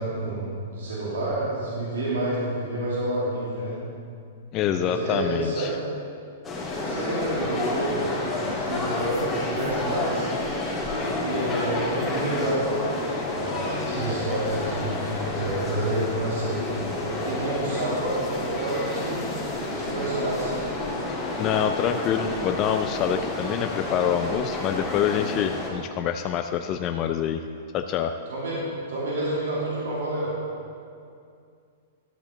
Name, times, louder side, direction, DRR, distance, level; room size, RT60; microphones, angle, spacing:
voice 1, 0.0-3.8 4.7-5.8 6.7-8.1 8.4-10.3 11.0-12.7 13.3-19.2 19.7-20.5 28.3-28.6 28.9-30.3, right 1 dB, 80° right, -6 dB, 2.3 m, -29 dB
voice 2, 4.5-5.8 21.4-27.4 27.7-28.2, left 9 dB, 35° left, 7 dB, 0.4 m, -26 dB
sound 1, 6.4-25.7, left 2 dB, 15° left, 2.2 m, -29 dB
12.0 x 7.0 x 3.8 m, 2.3 s
hypercardioid pair, 125°, 0 cm